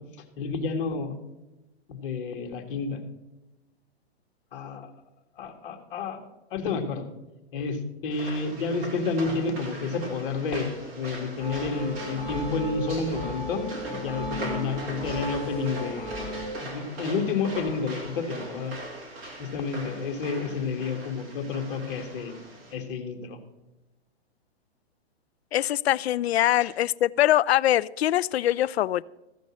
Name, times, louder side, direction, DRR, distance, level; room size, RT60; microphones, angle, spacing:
voice 1, 0.4-1.1 1.9-3.0 4.5-4.9 5.4-6.2 6.5-7.0 7.5-16.1 16.6-18.7 19.4-22.3 22.7-23.4 26.6-26.7, left 4 dB, 55° left, 1.9 m, -30 dB
sound 1, 8.1-22.7, right 2 dB, 25° right, 2.5 m, -40 dB
sound 2, 11.4-16.5, equal, 5° left, 4.2 m, -36 dB
voice 2, 25.5-29.0, left 13 dB, 70° left, 0.4 m, -23 dB
15.0 x 5.2 x 6.2 m
hypercardioid pair, 160°, 33 cm